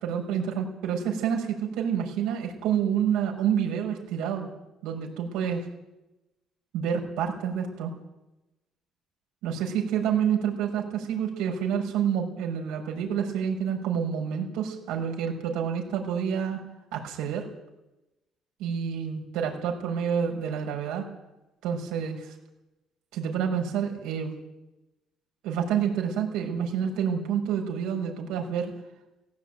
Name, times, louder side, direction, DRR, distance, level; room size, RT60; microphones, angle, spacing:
voice 1, 0.0-4.5 4.8-5.7 6.7-7.9 9.4-16.6 16.9-17.5 18.6-21.0 21.6-22.3 23.1-24.3 25.4-28.7, right 8 dB, 90° right, 1 dB, 5.9 m, -28 dB
18.0 x 17.0 x 9.2 m, 0.94 s
cardioid pair, 135°, 0 cm